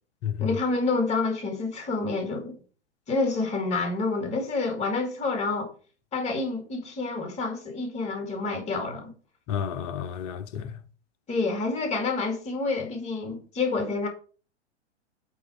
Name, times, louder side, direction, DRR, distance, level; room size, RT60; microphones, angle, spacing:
voice 1, 0.4-2.6 3.1-5.7 6.1-9.1 11.3-14.1, left 3 dB, 20° left, 2.1 m, -28 dB
voice 2, 9.5-10.8, left 9 dB, 35° left, 0.9 m, -31 dB
8.5 x 3.9 x 6.4 m
figure-of-eight pair, 105°, 35 cm